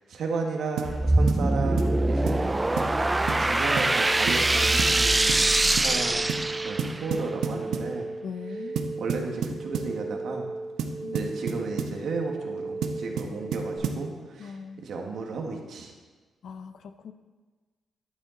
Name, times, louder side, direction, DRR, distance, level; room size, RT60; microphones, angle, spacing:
voice 1, 0.1-2.5 3.3-6.3 6.6-8.1 9.0-10.5 11.1-14.6 14.8-15.9, right 4 dB, 65° right, 2 dB, 1.6 m, -33 dB
sound 1, 0.8-7.1, right 2 dB, 15° right, 0.3 m, -23 dB
sound 2, 0.8-1.0 1.3-1.5 1.8-2.0 2.3-2.4 2.8-3.0 3.3-3.5 3.8-3.9 4.3-4.5 4.8-5.0 5.3-5.5 5.8-5.9 6.3-6.5 6.8-7.9 8.8-10.0 10.8-12.0 12.8-14.1, right 6 dB, 90° right, 0.9 m, -31 dB
sound 3, 3.8-13.8, right 3 dB, 35° left, 3.6 m, -36 dB
voice 2, 8.2-8.9 11.0-11.3 14.4-14.8 16.4-17.1, left 6 dB, 65° left, 9 dB, 0.7 m, -40 dB
11.5 x 9.3 x 3.9 m, 1.3 s
cardioid pair, 135°, 0 cm